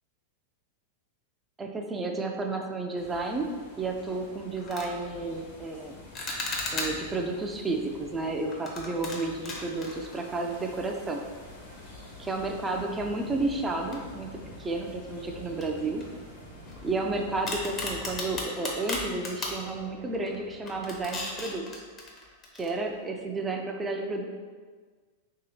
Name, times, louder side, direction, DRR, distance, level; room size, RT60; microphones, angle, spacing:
voice 1, 1.6-3.5 3.8-6.0 6.7-11.2 12.2-16.0 16.8-21.8 22.5-24.3, right 3 dB, 15° right, 2 dB, 0.5 m, -32 dB
sound 1, 3.0-18.4, left 3 dB, 60° left, 1.1 m, -48 dB
sound 2, 3.9-4.1 4.5-4.9 6.1-7.2 8.5-10.9 11.1-11.3 12.0-12.1 13.9-14.6 14.9-15.0 15.6-17.0 17.5-19.6 20.1-20.4 20.7-22.7, left 2 dB, 30° left, 0.8 m, -36 dB
sound 3, 11.3-21.4, right 4 dB, 65° right, 1.0 m, -52 dB
3.0 x 2.9 x 4.1 m, 1.5 s
hypercardioid pair, 110°, 0 cm